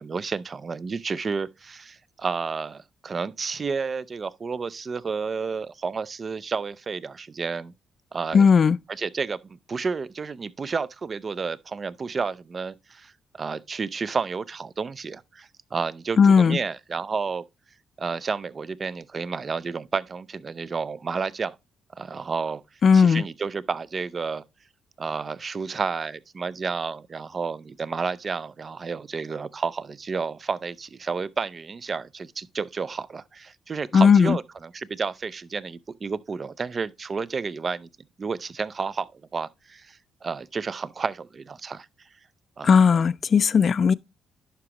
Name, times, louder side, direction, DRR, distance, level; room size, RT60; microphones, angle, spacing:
voice 1, 0.0-7.7 8.1-8.5 8.9-17.4 18.0-21.6 22.0-22.6 22.9-24.4 25.0-37.9 38.2-41.9 42.6-43.0, right 5 dB, 40° right, 0.4 m, -31 dB
voice 2, 8.3-8.8 16.2-16.6 22.8-23.2 33.9-34.4 42.6-43.9, left 6 dB, 50° left, 0.3 m, -16 dB
11.0 x 4.8 x 2.9 m
cardioid pair, 90°, 0 cm